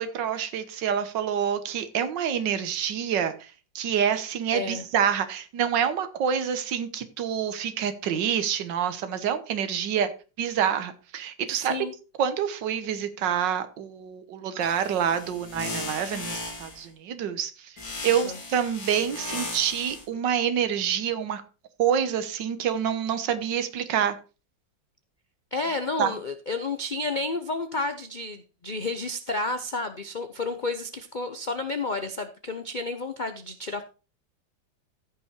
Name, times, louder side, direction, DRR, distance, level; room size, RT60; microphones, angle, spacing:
voice 1, 0.0-10.1 10.4-11.8 12.2-17.7 18.0-21.4 21.8-24.2 26.0-26.1, right 8 dB, 75° right, 10 dB, 1.7 m, -27 dB
voice 2, 4.5-4.8 11.6-11.9 18.1-18.4 25.5-33.8, left 3 dB, 45° left, 7 dB, 0.6 m, -31 dB
sound 1, 14.6-16.8 17.8-20.1, left 2 dB, 90° left, 3.8 m, -36 dB
14.5 x 5.8 x 4.4 m, 0.33 s
omnidirectional pair, 2.0 m